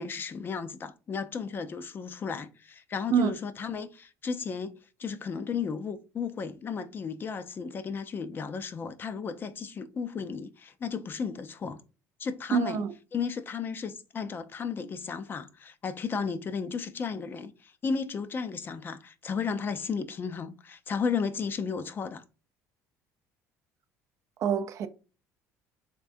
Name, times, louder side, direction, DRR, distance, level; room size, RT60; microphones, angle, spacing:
voice 1, 0.0-11.8 12.2-12.8 13.1-22.2, left 5 dB, 35° left, 0.4 m, -34 dB
voice 2, 12.5-12.9 24.4-24.9, right 7 dB, 55° right, 0.5 m, -25 dB
3.6 x 3.2 x 2.5 m
supercardioid pair, 100°, 6 cm